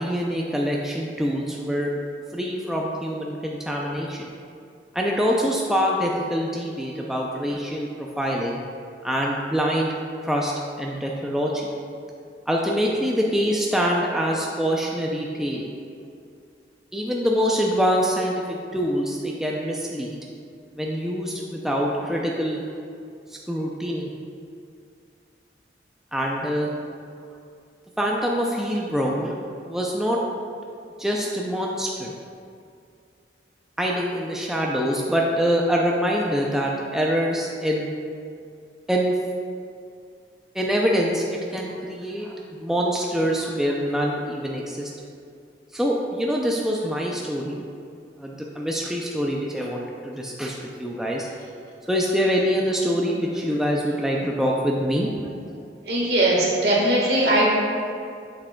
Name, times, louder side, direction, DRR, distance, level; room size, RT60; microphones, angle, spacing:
voice 1, 0.0-1.9 2.3-4.3 4.9-8.6 9.0-10.0 10.2-11.7 12.5-15.7 16.9-20.2 20.8-22.6 23.5-24.1 26.1-26.7 28.0-30.2 31.0-32.1 33.8-37.9 38.9-39.1 40.5-44.9 45.7-47.6 48.2-51.3 51.9-55.3, equal, 5° right, -2 dB, 0.4 m, -25 dB
voice 2, 55.8-57.4, right 1 dB, 65° right, -4 dB, 1.5 m, -20 dB
7.7 x 6.1 x 2.2 m, 2.3 s
head